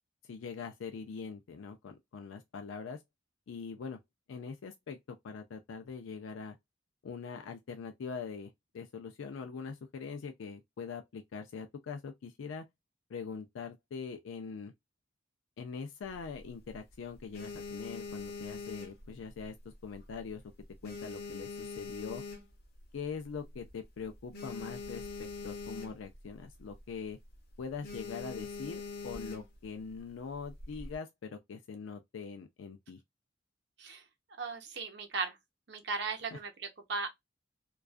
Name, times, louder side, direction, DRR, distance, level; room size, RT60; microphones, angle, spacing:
voice 1, 0.3-3.0 3.5-4.0 4.3-5.0 5.2-6.6 7.0-12.6 13.1-14.7 15.6-19.5 19.8-20.4 20.8-22.2 22.9-27.2 27.6-33.0 36.3-36.4, left 5 dB, 80° left, 0.4 m, -42 dB
sound 1, 16.0-16.7 17.1-19.6 19.9-20.3 20.6-22.8 23.3-23.4 23.6-23.7 24.0-26.2 26.5-26.8 27.1-27.4 27.8-29.7 30.4-31.0, left 4 dB, 55° left, 0.7 m, -43 dB
voice 2, 34.4-35.4 35.7-37.1, right 4 dB, 60° right, 0.7 m, -37 dB
2.3 x 2.3 x 2.4 m
head